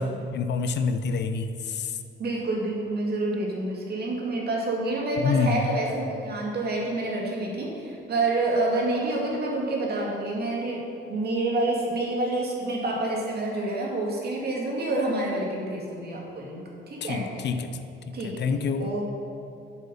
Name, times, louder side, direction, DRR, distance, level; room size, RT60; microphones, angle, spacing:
voice 1, 0.0-2.0 5.2-5.7 17.0-17.7 18.1-18.9, left 4 dB, 60° left, 9 dB, 0.6 m, -27 dB
voice 2, 2.2-10.8 11.1-17.4 18.1-18.4 18.8-19.1, right 2 dB, 55° right, -2 dB, 2.2 m, -28 dB
7.3 x 7.2 x 5.7 m, 2.7 s
cardioid pair, 90°, 20 cm